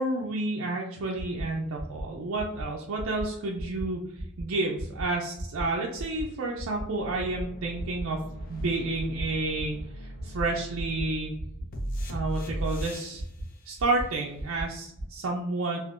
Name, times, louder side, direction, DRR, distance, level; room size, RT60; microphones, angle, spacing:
voice 1, 0.0-4.0 4.4-8.2 8.5-11.3 12.1-13.2 13.7-15.8, right 2 dB, 75° right, -2 dB, 0.5 m, -30 dB
sound 1, 1.2-1.4 1.8-2.0 2.4-2.6 3.0-3.2 3.6-3.8 4.2-4.4 4.8-5.0 5.4-5.6 6.0-6.2 6.6-6.8 7.2-7.4 7.8-8.0 8.4-8.6 9.0-9.2 9.6-9.8 10.2-10.4 10.8-11.0 11.4-11.6 12.0-12.2 12.6-12.8 13.2-13.4 13.8-14.0 14.4-14.6 15.0-15.1, right 1 dB, 15° left, 1.0 m, -35 dB
sound 2, 7.0-13.2 14.8-14.9, right 1 dB, 45° left, 0.5 m, -38 dB
3.5 x 2.5 x 2.5 m, 0.80 s
head